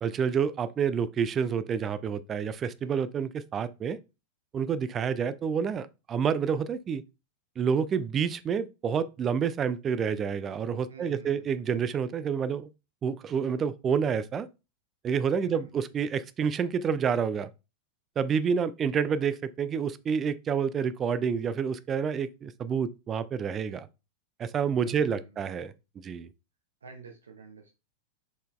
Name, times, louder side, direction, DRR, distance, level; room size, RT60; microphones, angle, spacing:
voice 1, 0.0-4.0 4.5-7.0 7.6-12.7 13.0-14.5 15.0-17.5 18.2-23.9 24.4-25.7 26.0-26.3, right 7 dB, 25° right, 0.3 m, -28 dB
voice 2, 10.9-11.6 15.4-15.7 24.8-25.7 26.8-27.7, right 5 dB, 70° right, 0.6 m, -49 dB
4.1 x 3.9 x 2.3 m
figure-of-eight pair, 90°, 0 cm